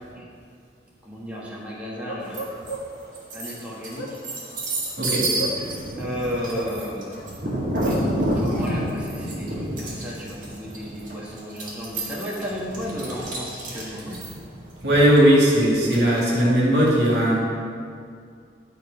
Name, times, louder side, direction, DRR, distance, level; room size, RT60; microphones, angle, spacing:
voice 1, 1.0-2.4 3.3-4.1 5.9-7.3 8.4-14.2, equal, 10° right, -6 dB, 1.3 m, -33 dB
Bark, 2.0-3.1 3.7-6.1 6.5-8.1, right 1 dB, 80° left, 1.1 m, -35 dB
sound 1, 2.3-2.8 3.1-16.4, right 1 dB, 45° right, 2.1 m, -29 dB
voice 2, 14.8-17.3, equal, 75° right, -5 dB, 2.3 m, -18 dB
10.5 x 4.6 x 5.6 m, 2.3 s
head